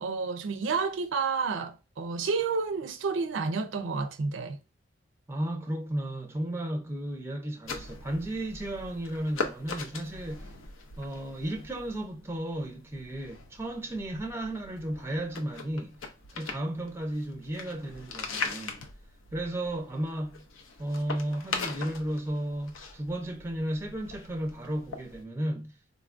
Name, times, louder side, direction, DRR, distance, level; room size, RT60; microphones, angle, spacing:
voice 1, 0.0-4.6, right 4 dB, 70° right, 0.4 m, -30 dB
voice 2, 5.3-10.5 11.0-16.0 16.3-18.8 19.3-20.4 20.8-25.7, right 1 dB, 15° right, 0.5 m, -34 dB
sound 1, 7.7-25.2, left 4 dB, 90° left, 0.6 m, -41 dB
3.9 x 2.3 x 2.4 m
head